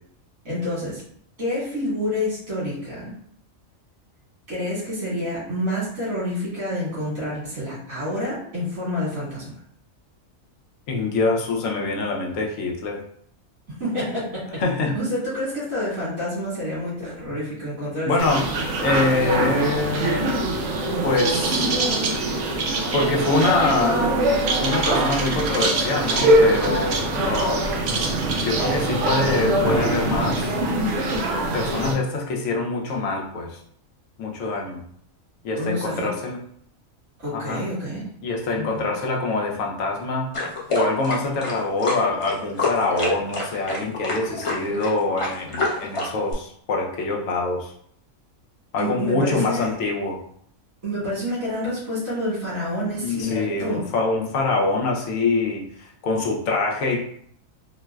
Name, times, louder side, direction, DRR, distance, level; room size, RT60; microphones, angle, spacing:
voice 1, 0.4-1.0 1.4-3.1 4.5-9.5 13.8-14.6 14.9-18.1 35.6-36.1 37.2-38.0 38.6-38.9 44.6-44.8 48.8-49.7 50.8-53.8, left 1 dB, 90° right, -9 dB, 2.0 m, -28 dB
voice 2, 10.9-13.0 14.6-14.9 17.3-17.4 18.1-20.4 21.0-21.7 22.9-24.0 24.6-27.7 28.4-30.6 31.5-33.6 34.2-34.8 35.4-36.4 37.3-37.6 38.2-40.3 40.7-47.7 48.7-50.2 53.0-57.0, left 3 dB, 75° left, 0 dB, 1.0 m, -24 dB
sound 1, 18.2-31.9, right 1 dB, 70° right, 0.8 m, -23 dB
sound 2, 40.3-46.3, left 2 dB, 45° left, 0.4 m, -27 dB
3.9 x 2.0 x 2.3 m, 0.65 s
omnidirectional pair, 1.4 m